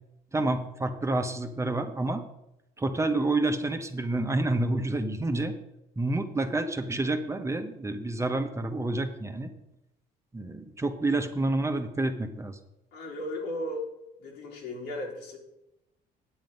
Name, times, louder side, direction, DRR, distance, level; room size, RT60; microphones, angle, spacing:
voice 1, 0.3-2.2 2.8-5.5 6.0-9.5 10.3-12.6, right 2 dB, 15° right, 7 dB, 0.9 m, -28 dB
voice 2, 12.9-13.9 14.2-15.4, left 1 dB, 85° left, 0 dB, 3.0 m, -35 dB
8.9 x 7.8 x 5.3 m, 0.87 s
cardioid pair, 110°, 17 cm